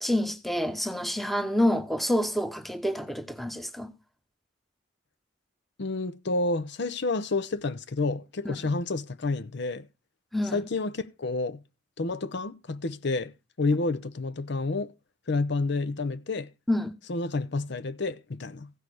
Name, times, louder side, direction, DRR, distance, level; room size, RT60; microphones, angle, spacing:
voice 1, 0.0-3.9 8.4-8.7 10.3-10.6 16.7-16.9, left 1 dB, ahead, 1.0 m, -28 dB
voice 2, 5.8-9.9 10.5-11.6 12.0-13.3 13.6-14.9 15.3-16.5 17.1-18.7, left 3 dB, 65° left, 0.7 m, -29 dB
15.5 x 6.4 x 4.8 m
head